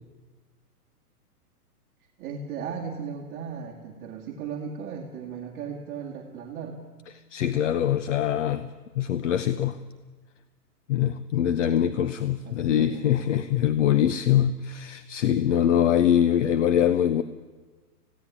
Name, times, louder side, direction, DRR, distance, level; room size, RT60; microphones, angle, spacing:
voice 1, 2.2-6.8 12.3-13.1, right 6 dB, 20° right, -2 dB, 2.0 m, -36 dB
voice 2, 7.3-8.7 9.0-9.8 10.9-17.2, left 10 dB, 50° left, 13 dB, 0.9 m, -23 dB
20.5 x 16.0 x 9.8 m, 1.3 s
hypercardioid pair, 160°, 47 cm